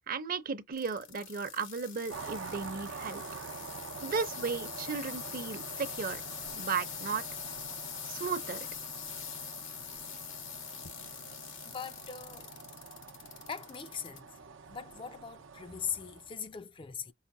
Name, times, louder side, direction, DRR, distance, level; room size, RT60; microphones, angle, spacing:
voice 1, 0.1-3.2 4.0-6.2 6.5-7.2 8.0-8.7, right 5 dB, 45° right, 0.7 m, -35 dB
sound 1, 0.7-14.2 14.7-15.2 15.8-15.9, left 8 dB, 85° left, 1.0 m, -44 dB
sound 2, 2.1-16.4, right 5 dB, 85° right, 0.6 m, -46 dB
voice 2, 11.6-12.5 13.5-14.3 14.7-17.1, left 7 dB, 25° left, 0.3 m, -40 dB
5.7 x 2.1 x 2.6 m
head